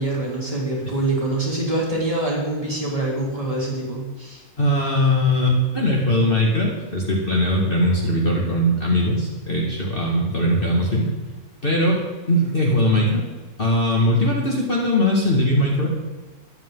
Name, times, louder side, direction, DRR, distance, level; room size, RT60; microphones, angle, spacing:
voice 1, 0.0-4.4, right 2 dB, 20° right, -5 dB, 3.3 m, -25 dB
voice 2, 4.6-11.1 11.6-12.0 12.3-13.2 13.6-15.9, left 1 dB, 35° left, -3 dB, 2.1 m, -20 dB
13.5 x 10.5 x 3.9 m, 1.2 s
omnidirectional pair, 1.6 m